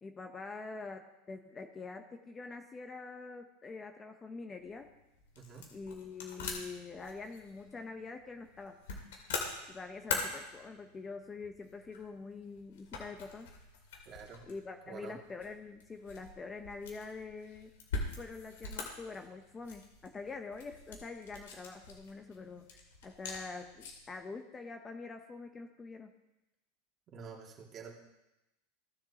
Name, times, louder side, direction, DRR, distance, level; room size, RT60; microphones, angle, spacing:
voice 1, 0.0-4.9 5.7-8.8 9.7-13.5 14.5-17.7 18.2-26.1, left 4 dB, 20° left, 6 dB, 0.8 m, -45 dB
sound 1, 4.6-24.2, left 4 dB, 85° left, 2.4 m, -44 dB
voice 2, 5.4-5.7 14.1-14.4 14.9-15.2 27.1-27.9, right 6 dB, 35° right, -1 dB, 2.3 m, -48 dB
16.5 x 7.2 x 2.9 m, 0.95 s
supercardioid pair, 125°, 0 cm